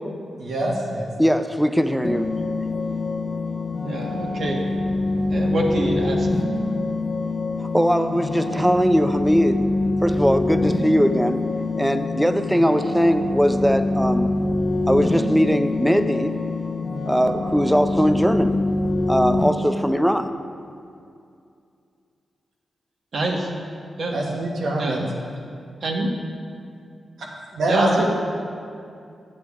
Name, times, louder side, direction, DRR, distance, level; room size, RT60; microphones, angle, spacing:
voice 1, 0.4-1.1 24.1-25.0 27.5-28.0, right 1 dB, 85° right, -3 dB, 1.7 m, -24 dB
voice 2, 1.2-2.3 7.6-9.6 10.0-11.4 11.8-14.3 14.9-16.3 17.1-18.6 19.1-20.4, equal, 5° right, 9 dB, 0.5 m, -20 dB
sound 1, 2.0-19.5, left 2 dB, 55° left, 0.9 m, -25 dB
voice 3, 3.8-4.6 5.3-6.3 23.1-23.5 24.0-24.2 24.8-25.1 25.8-26.1 27.7-28.0, right 1 dB, 70° right, -1 dB, 1.5 m, -25 dB
11.0 x 7.7 x 3.6 m, 2.4 s
cardioid pair, 65°, 0 cm